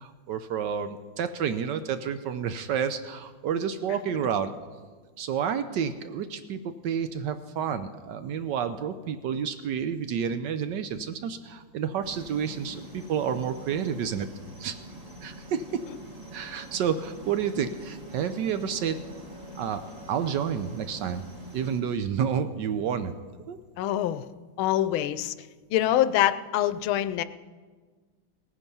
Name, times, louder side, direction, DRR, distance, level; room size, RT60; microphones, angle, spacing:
voice 1, 0.0-4.5 5.2-14.3 14.6-14.7 15.2-15.7 16.3-19.0 19.6-19.8 20.1-21.3 21.5-23.1 23.5-23.6, right 7 dB, 70° right, 10 dB, 1.2 m, -30 dB
sound 1, 12.0-21.8, right 1 dB, 20° right, 1.3 m, -45 dB
voice 2, 23.8-24.2 24.6-25.3 25.7-27.2, left 12 dB, 85° left, 14 dB, 1.4 m, -25 dB
17.5 x 9.9 x 5.5 m, 1.4 s
omnidirectional pair, 2.2 m